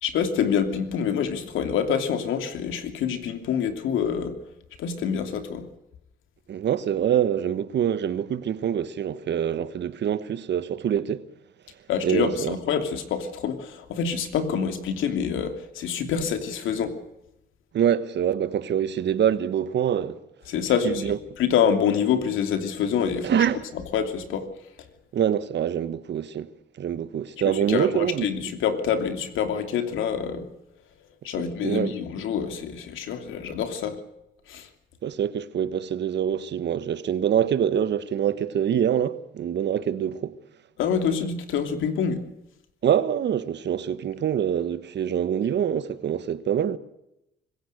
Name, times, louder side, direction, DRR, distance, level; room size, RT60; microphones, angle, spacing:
voice 1, 0.0-4.4 4.8-5.7 11.9-17.0 20.5-24.5 27.4-30.5 31.2-34.0 34.5-34.7 40.8-42.2, left 7 dB, 85° left, 2.9 m, -26 dB
voice 2, 6.5-11.2 12.0-12.5 17.7-20.2 20.8-21.2 23.2-23.6 25.1-26.5 26.8-28.2 31.6-31.9 35.0-40.3 42.8-46.8, right 9 dB, 60° right, 1.4 m, -25 dB
25.5 x 15.5 x 6.7 m
cardioid pair, 90°, 20 cm